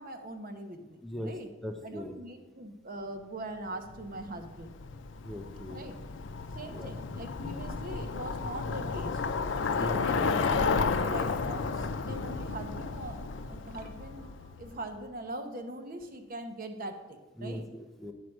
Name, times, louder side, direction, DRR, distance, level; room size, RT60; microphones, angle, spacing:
voice 1, 0.0-1.5 1.8-4.8 5.7-6.0 6.5-9.2 9.7-17.6, right 1 dB, 50° right, 6 dB, 0.9 m, -42 dB
voice 2, 1.0-1.3 1.6-2.1 5.2-5.9 6.7-6.9 9.8-10.0 17.4-18.1, equal, ahead, 4 dB, 0.5 m, -39 dB
Bicycle, 3.9-14.8, left 4 dB, 70° left, 0.5 m, -32 dB
9.1 x 4.6 x 6.4 m, 1.1 s
head